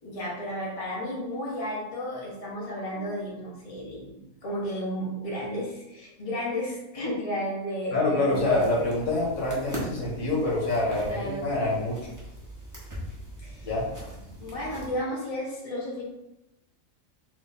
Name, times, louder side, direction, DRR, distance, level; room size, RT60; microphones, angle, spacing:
voice 1, 0.0-8.7 10.8-11.5 13.4-13.7 14.4-16.0, equal, 30° left, -6 dB, 1.2 m, -33 dB
voice 2, 7.9-12.0 13.6-13.9, left 2 dB, 70° left, -4 dB, 1.6 m, -26 dB
sound 1, 8.3-14.9, equal, 15° right, 1.1 m, -41 dB
3.4 x 3.4 x 4.1 m, 0.93 s
omnidirectional pair, 1.4 m